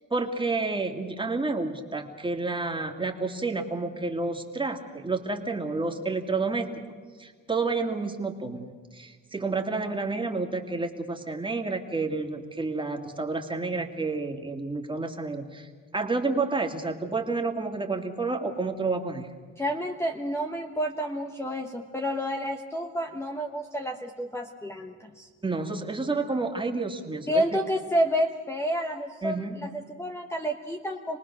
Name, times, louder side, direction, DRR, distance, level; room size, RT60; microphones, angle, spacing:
voice 1, 0.1-6.7 7.2-19.3 25.4-27.4 29.2-29.6, right 3 dB, 15° right, 3 dB, 2.3 m, -30 dB
voice 2, 19.6-25.3 27.3-31.2, equal, 10° left, 3 dB, 1.2 m, -30 dB
27.5 x 19.0 x 6.4 m, 1.5 s
cardioid pair, 90°, 30 cm